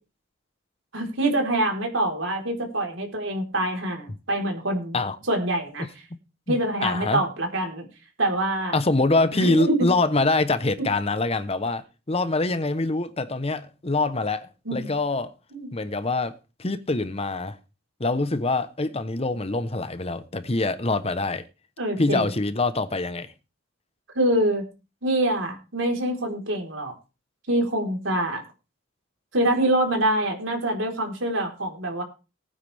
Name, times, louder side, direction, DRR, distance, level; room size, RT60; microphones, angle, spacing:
voice 1, 0.9-5.0 5.3-5.9 6.5-7.9 8.2-8.7 9.3-9.9 10.8-10.9 14.7-14.9 15.5-15.7 21.8-22.3 24.1-24.7 25.0-26.9 27.5-28.4 29.3-32.0, right 1 dB, 80° right, 4.2 m, -25 dB
voice 2, 6.5-7.2 8.7-15.3 15.7-16.3 16.6-17.6 18.0-21.4 22.0-23.3, left 2 dB, 30° left, 1.0 m, -25 dB
19.0 x 9.5 x 3.5 m
head